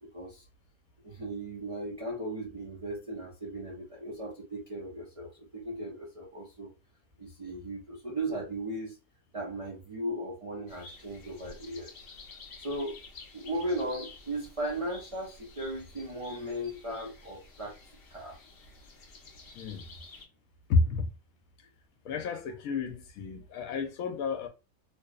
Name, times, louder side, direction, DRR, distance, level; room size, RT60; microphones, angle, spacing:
voice 1, 0.0-0.4 1.0-6.7 7.2-9.0 9.3-11.9 12.6-13.0 13.3-17.8 18.1-18.4, right 1 dB, 60° right, 0.3 m, -37 dB
sound 1, 10.7-20.2, left 3 dB, 60° left, 0.6 m, -51 dB
voice 2, 20.7-21.1 22.0-24.5, left 4 dB, 75° left, 1.0 m, -30 dB
2.9 x 2.0 x 2.2 m
omnidirectional pair, 1.5 m